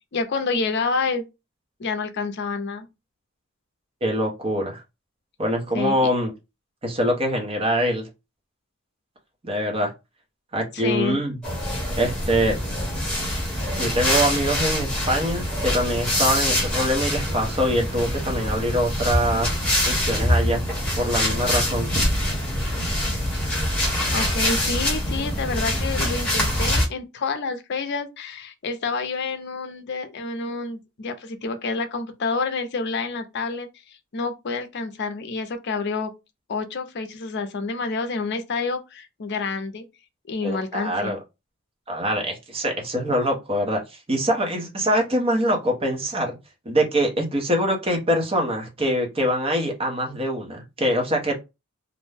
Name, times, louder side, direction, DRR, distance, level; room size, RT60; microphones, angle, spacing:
voice 1, 0.1-1.2 1.8-2.9 5.7-6.1 10.7-11.2 24.1-33.7 34.1-36.1 36.5-39.8 40.3-41.1, left 4 dB, 55° left, 0.5 m, -28 dB
voice 2, 4.0-4.8 5.4-6.3 6.8-8.1 9.4-9.9 10.5-11.4 12.0-12.6 13.8-19.6 19.8-20.6 21.0-21.9 40.4-41.2 41.9-46.3 46.6-51.3, equal, 30° right, 0.8 m, -24 dB
sound 1, 11.4-26.9, left 1 dB, 5° left, 1.0 m, -24 dB
2.5 x 2.1 x 3.2 m
head